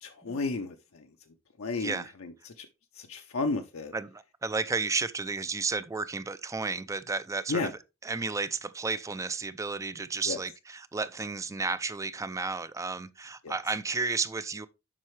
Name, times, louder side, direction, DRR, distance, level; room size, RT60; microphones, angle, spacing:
voice 1, 0.0-1.0 1.6-2.7 3.0-3.9 7.5-7.7 10.3-10.4 13.4-13.5, left 3 dB, 70° left, 0.6 m, -33 dB
voice 2, 1.8-2.1 3.9-7.7 8.0-14.7, right 4 dB, 15° right, 0.3 m, -32 dB
7.4 x 5.5 x 3.2 m
head